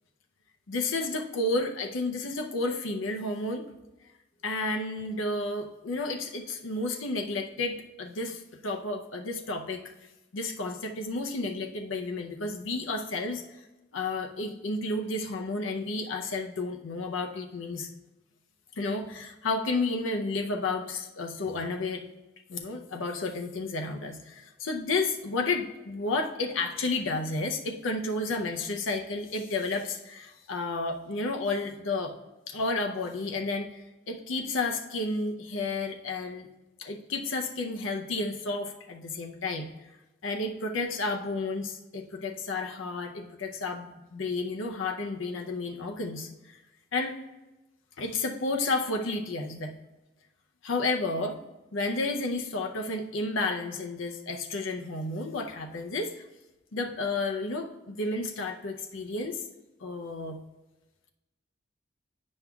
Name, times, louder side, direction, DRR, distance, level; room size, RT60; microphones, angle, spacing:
voice 1, 0.7-3.6 4.4-9.8 10.3-13.4 13.9-17.9 18.7-22.0 22.5-32.1 32.5-36.5 36.8-39.7 40.2-46.6 46.9-47.2 48.0-49.7 50.6-51.4 51.7-56.2 56.7-59.4 59.8-60.4, left 2 dB, 85° left, 3 dB, 0.6 m, -31 dB
9.4 x 5.3 x 2.3 m, 1.0 s
head